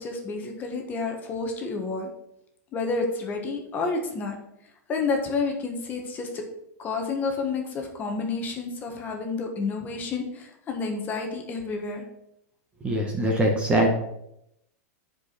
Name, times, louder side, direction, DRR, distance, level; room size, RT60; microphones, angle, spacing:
voice 1, 0.0-2.1 2.7-4.4 4.9-6.4 6.8-12.0, left 4 dB, 20° left, 3 dB, 1.3 m, -30 dB
voice 2, 12.8-13.9, right 1 dB, 10° right, 1 dB, 1.0 m, -22 dB
9.4 x 4.9 x 5.9 m, 0.80 s
supercardioid pair, 165°, 9 cm